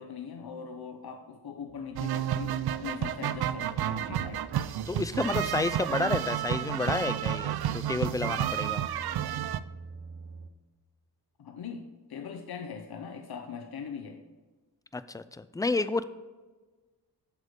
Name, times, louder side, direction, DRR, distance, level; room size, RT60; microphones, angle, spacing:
voice 1, 0.0-4.5 11.4-14.2, left 6 dB, 70° left, 5 dB, 0.9 m, -41 dB
sound 1, 1.7-10.5, right 4 dB, 35° right, 0.7 m, -48 dB
sound 2, 1.9-9.6, right 11 dB, 70° right, 0.5 m, -31 dB
voice 2, 4.9-8.9 14.9-16.0, left 3 dB, 10° left, 14 dB, 0.3 m, -30 dB
8.3 x 6.5 x 5.2 m, 1.3 s
wide cardioid pair, 105°, 40 cm